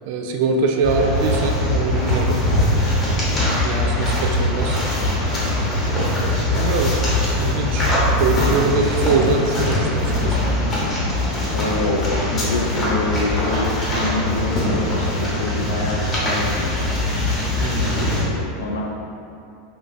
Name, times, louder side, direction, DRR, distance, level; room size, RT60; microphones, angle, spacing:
voice 1, 0.1-2.4 3.6-4.8 5.2-5.6 5.9-7.0 7.4-10.4 17.6-18.3, right 4 dB, 65° right, 3 dB, 0.3 m, -23 dB
sound 1, 0.8-18.3, left 1 dB, 25° left, 0.9 m, -21 dB
voice 2, 5.8-6.2 10.7-11.0 11.5-16.9 17.8-18.8, left 2 dB, 85° left, -2 dB, 0.3 m, -27 dB
3.6 x 2.3 x 2.5 m, 2.7 s
hypercardioid pair, 100°, 0 cm